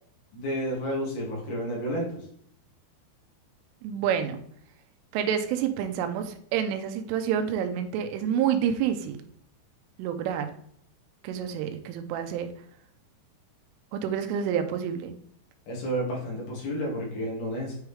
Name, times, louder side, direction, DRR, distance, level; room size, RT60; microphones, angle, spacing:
voice 1, 0.3-2.2 15.7-17.8, equal, 60° left, -4 dB, 4.1 m, -31 dB
voice 2, 3.8-4.4 5.1-9.2 10.0-10.5 11.2-12.5 13.9-15.2, right 8 dB, 90° right, 7 dB, 3.3 m, -28 dB
9.3 x 4.8 x 3.4 m, 0.65 s
omnidirectional pair, 5.7 m